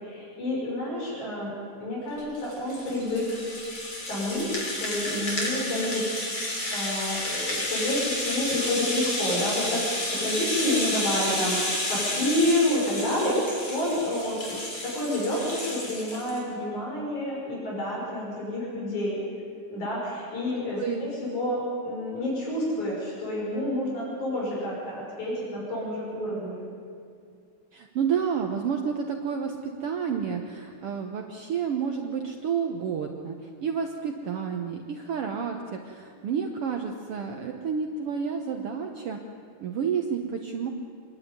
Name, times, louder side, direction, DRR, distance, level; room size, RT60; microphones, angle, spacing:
voice 1, 0.0-1.5 1.8-3.4 4.1-6.0 6.7-19.2 19.7-26.6, left 1 dB, 75° left, -4 dB, 6.8 m, -29 dB
Rattle (instrument), 2.2-16.4, left 1 dB, 40° left, 4.1 m, -31 dB
voice 2, 27.7-33.4 33.6-39.2 39.6-40.7, right 6 dB, 60° right, 3 dB, 1.7 m, -30 dB
25.5 x 11.5 x 9.5 m, 2.3 s
omnidirectional pair, 3.5 m